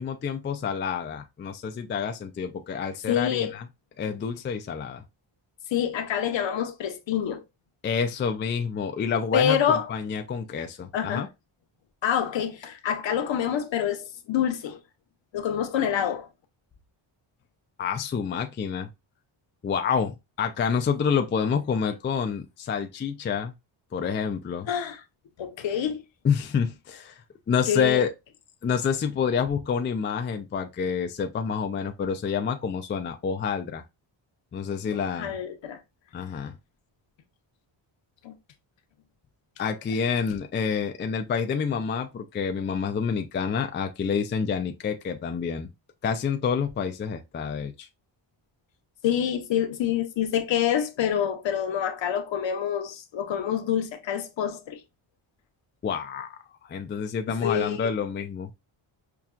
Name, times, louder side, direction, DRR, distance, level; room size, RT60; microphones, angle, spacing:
voice 1, 0.0-3.7 4.0-5.0 7.8-11.3 17.8-18.9 19.6-23.5 23.9-24.7 26.2-28.1 28.6-33.8 34.5-35.3 36.1-36.5 39.6-45.7 46.0-47.9 55.8-56.4 56.6-58.5, left 6 dB, 25° left, 0.3 m, -28 dB
voice 2, 3.1-3.5 5.7-7.4 9.3-9.9 10.9-11.3 12.0-14.8 15.3-16.3 21.8-21.9 24.7-25.0 25.4-26.0 27.7-28.0 35.2-35.8 38.2-38.3 49.0-54.8 57.3-57.9, left 9 dB, 65° left, 0.8 m, -26 dB
5.7 x 2.3 x 2.4 m
wide cardioid pair, 140°, 49 cm